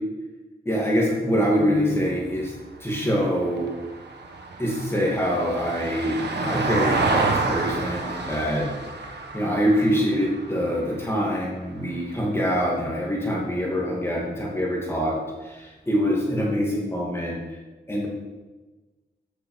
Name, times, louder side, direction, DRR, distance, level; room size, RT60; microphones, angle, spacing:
voice 1, 0.6-2.5 2.8-3.7 4.6-8.7 9.3-17.4 17.9-18.1, equal, 15° left, -3 dB, 2.6 m, -24 dB
Vehicle, 1.7-12.1 14.4-14.5, right 3 dB, 80° right, 1.4 m, -30 dB
14.5 x 6.8 x 5.7 m, 1.2 s
wide cardioid pair, 115°, 17 cm